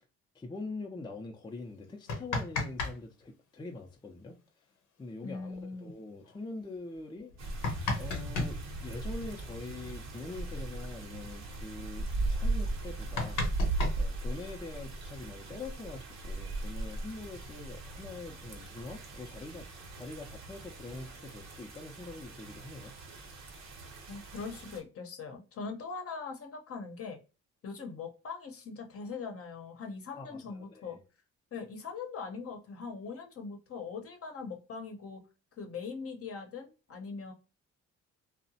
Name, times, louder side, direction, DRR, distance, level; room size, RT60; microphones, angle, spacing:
voice 1, 0.3-4.4 5.0-13.4 14.0-19.7 19.9-22.9 30.1-31.0, left 3 dB, 15° left, 0.5 m, -44 dB
sound 1, 1.9-3.0 3.2-3.3 5.1-5.2 5.5-5.6 6.2-6.4 7.2-8.6 10.1-10.2 10.5-10.7 11.0-11.4 11.9-12.0 12.4-12.5 12.8-14.7 15.6-16.4, left 3 dB, 85° left, 0.8 m, -35 dB
voice 2, 5.2-5.9 24.1-27.2 27.6-31.0 31.5-35.2 35.6-37.3, left 5 dB, 50° left, 0.8 m, -41 dB
sound 2, 7.4-24.8, right 2 dB, 60° right, 0.8 m, -38 dB
2.8 x 2.1 x 2.7 m
cardioid pair, 90°, 30 cm